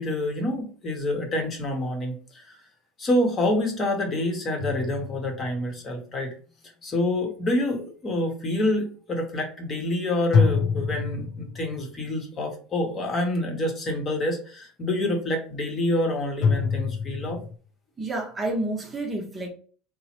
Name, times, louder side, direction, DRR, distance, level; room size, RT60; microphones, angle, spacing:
voice 1, 0.0-2.6 3.0-6.3 6.8-17.4, left 1 dB, 35° left, 0.9 m, -27 dB
sound 1, 4.6-5.8 10.3-11.9 16.4-17.6, left 5 dB, 50° left, 0.4 m, -25 dB
voice 2, 18.0-19.5, right 2 dB, 20° right, 0.7 m, -29 dB
3.0 x 2.0 x 2.8 m
supercardioid pair, 105°, 0 cm